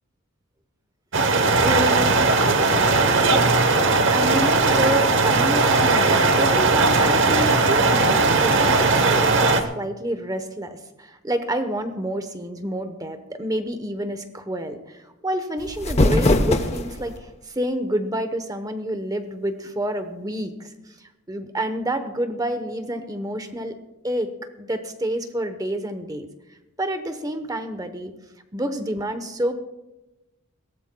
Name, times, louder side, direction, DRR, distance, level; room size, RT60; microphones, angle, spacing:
sound 1, 1.1-9.6, right 3 dB, 55° right, 0.9 m, -18 dB
voice 1, 1.6-20.7 21.0-23.7 24.0-24.3 24.6-26.3 26.8-28.1 28.5-29.5, right 1 dB, 15° right, 8 dB, 0.9 m, -29 dB
sound 2, 15.6-17.2, left 1 dB, 30° left, 0.9 m, -21 dB
21.5 x 17.5 x 2.3 m, 1.0 s
head